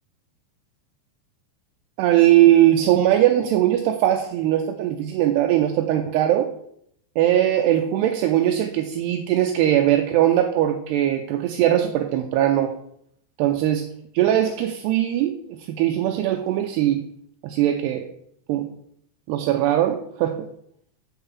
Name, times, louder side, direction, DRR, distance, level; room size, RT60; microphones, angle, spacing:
voice 1, 2.0-6.5 7.2-12.7 13.4-13.9 14.1-17.0 17.4-18.1 18.5-18.7 19.3-20.5, right 12 dB, 80° right, 5 dB, 2.4 m, -20 dB
7.9 x 5.6 x 7.0 m, 0.70 s
omnidirectional pair, 5.3 m